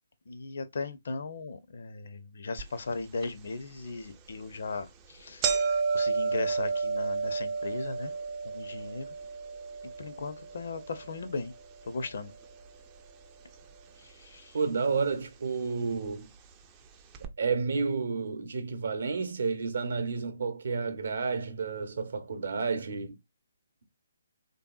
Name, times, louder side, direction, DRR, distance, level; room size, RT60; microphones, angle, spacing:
voice 1, 0.3-8.1 8.4-9.1 10.0-11.5 11.8-12.3 14.0-14.6, left 3 dB, 50° left, 0.5 m, -37 dB
sound 1, 2.6-2.7 3.2-3.3 4.1-4.3 4.7-4.8 5.0-13.2 13.5-14.3 15.1-15.2 16.1-16.2 16.5-16.6 17.1-17.3, right 5 dB, 20° right, 0.4 m, -32 dB
voice 2, 14.5-16.3 17.2-23.2, right 5 dB, 55° right, 0.7 m, -31 dB
3.4 x 2.6 x 2.3 m
figure-of-eight pair, 135°, 0 cm